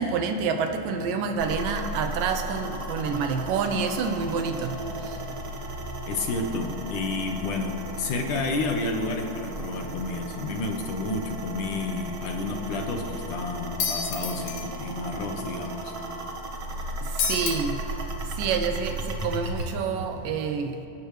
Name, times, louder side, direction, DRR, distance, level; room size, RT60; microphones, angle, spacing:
voice 1, 0.0-5.2 17.3-17.8 18.4-20.8, right 5 dB, 75° right, 6 dB, 2.3 m, -28 dB
sound 1, 1.4-19.7, equal, 55° right, 1.2 m, -35 dB
voice 2, 6.0-15.9, left 2 dB, 65° left, 3 dB, 2.4 m, -30 dB
sound 2, 13.8-14.6 17.2-17.5, left 6 dB, 85° left, 3.5 m, -28 dB
24.5 x 17.0 x 3.2 m, 2.6 s
omnidirectional pair, 4.3 m